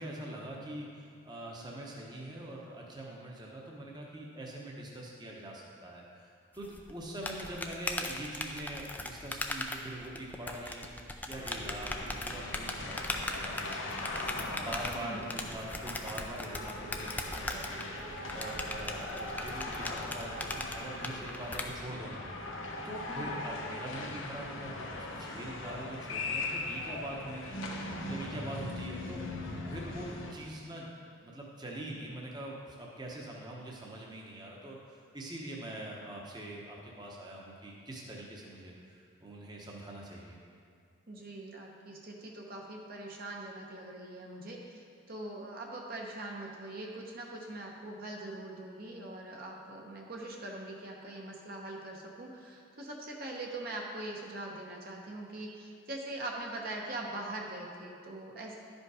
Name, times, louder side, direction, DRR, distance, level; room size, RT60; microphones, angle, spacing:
voice 1, 0.0-10.9 11.2-22.2 22.8-27.6 28.0-29.2 29.7-30.9 31.2-40.4, right 1 dB, 20° right, -2 dB, 0.9 m, -43 dB
sound 1, 6.6-21.6, left 2 dB, 10° left, 0.4 m, -39 dB
sound 2, 11.3-30.3, left 2 dB, 75° left, 1.0 m, -40 dB
voice 2, 14.9-15.3 23.1-23.4 41.1-58.5, right 2 dB, 45° right, -1 dB, 0.9 m, -42 dB
11.5 x 5.3 x 4.8 m, 2.2 s
head